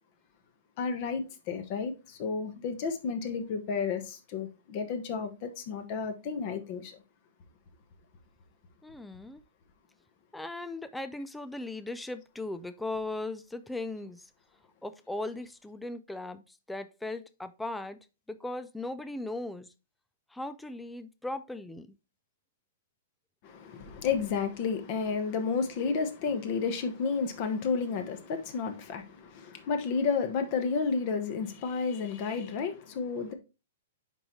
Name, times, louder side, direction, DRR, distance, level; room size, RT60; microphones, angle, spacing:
voice 1, 0.8-7.0 23.4-33.3, left 5 dB, 35° left, 1.1 m, -31 dB
voice 2, 8.8-9.4 10.3-14.3 14.8-18.0 18.3-19.7 20.3-21.9, left 2 dB, 5° left, 0.4 m, -38 dB
9.7 x 3.9 x 3.1 m
hypercardioid pair, 165°, 0 cm